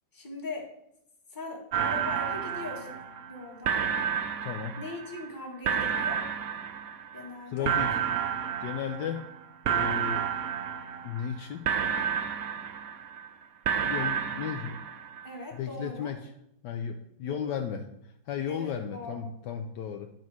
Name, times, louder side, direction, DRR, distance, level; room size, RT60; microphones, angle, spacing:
voice 1, 0.1-0.7 1.3-3.0 3.3-3.8 4.8-6.3 7.1-7.7 15.2-16.1 17.2-17.4 18.5-19.3, left 2 dB, 10° left, 0 dB, 1.3 m, -40 dB
sound 1, 1.7-3.4 3.6-5.3 5.7-7.3 7.6-9.4 9.6-11.4 11.6-13.3 13.7-15.3, right 8 dB, 65° right, 0.9 m, -31 dB
voice 2, 4.4-4.8 7.5-8.0 8.6-9.3 9.6-10.3 11.0-11.7 13.8-14.8 15.5-16.3 16.6-20.1, left 8 dB, 75° left, 6 dB, 1.1 m, -35 dB
10.5 x 4.2 x 6.1 m, 0.79 s
omnidirectional pair, 2.1 m